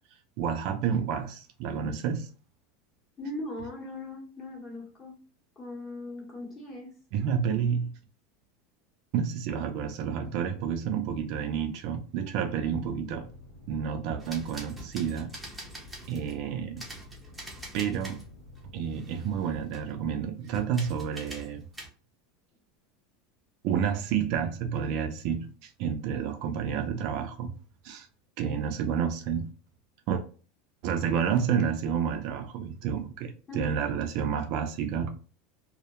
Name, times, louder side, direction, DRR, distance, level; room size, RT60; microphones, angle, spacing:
voice 1, 0.4-2.3 7.1-7.9 9.1-13.3 13.7-15.3 16.1-16.8 17.7-18.2 18.7-21.6 23.6-27.5 27.8-28.1 28.4-29.5 30.1-30.2 30.8-35.2, right 7 dB, 50° right, 0.3 m, -30 dB
voice 2, 3.2-5.2 5.6-6.9 33.5-33.7, left 2 dB, 20° left, 0.8 m, -39 dB
sound 1, 12.6-19.6, left 2 dB, 75° left, 1.0 m, -51 dB
sound 2, 14.2-16.3 16.8-18.3 18.6-20.0 20.5-21.9, right 1 dB, 5° right, 0.5 m, -45 dB
2.2 x 2.0 x 2.9 m
supercardioid pair, 165°, 0 cm